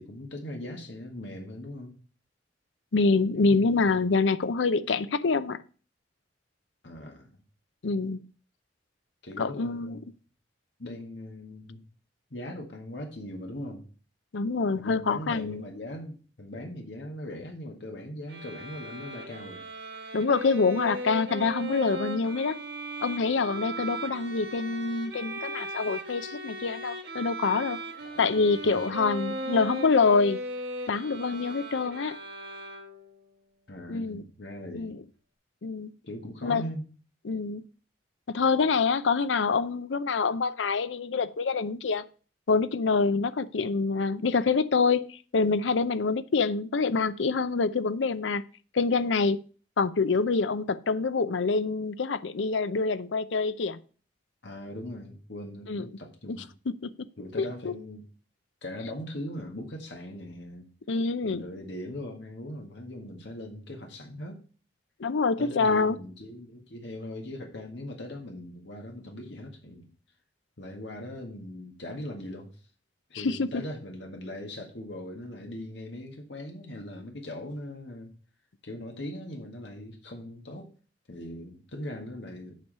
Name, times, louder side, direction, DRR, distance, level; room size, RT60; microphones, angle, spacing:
voice 1, 0.0-2.0 3.3-3.8 6.8-7.3 9.2-10.0 10.8-11.8 12.3-13.9 14.8-19.6 28.0-29.1 33.7-35.0 36.0-36.9 54.4-56.5 57.2-58.0 58.6-60.7 61.2-64.4 65.4-69.9 70.6-72.5 73.1-78.1 78.6-80.7 81.1-82.5, left 1 dB, 65° left, 1.8 m, -40 dB
voice 2, 2.9-5.6 7.8-8.3 9.4-10.0 14.3-15.6 20.1-22.6 23.0-27.8 28.2-30.4 30.9-32.2 33.9-34.2 34.7-35.0 35.6-35.9 36.4-36.6 37.2-37.6 38.3-42.0 42.5-48.4 48.7-49.4 49.8-53.8 55.7-55.9 56.3-56.4 56.7-57.1 57.4-57.7 60.9-61.4 65.0-66.0 73.1-73.6, left 4 dB, 80° left, 0.6 m, -26 dB
sound 1, 18.3-33.2, right 1 dB, 60° right, 1.8 m, -38 dB
8.3 x 4.7 x 6.7 m
head